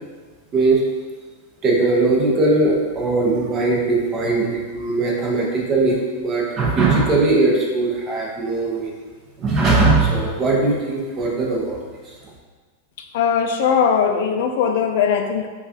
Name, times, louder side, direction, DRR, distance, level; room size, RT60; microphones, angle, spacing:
voice 1, 1.6-9.0 9.4-11.8 12.0-12.1, right 3 dB, 25° right, -3 dB, 0.8 m, -19 dB
voice 2, 13.1-15.5, left 7 dB, 60° left, 5 dB, 0.3 m, -19 dB
5.7 x 2.4 x 2.8 m, 1.4 s
supercardioid pair, 160°, 0 cm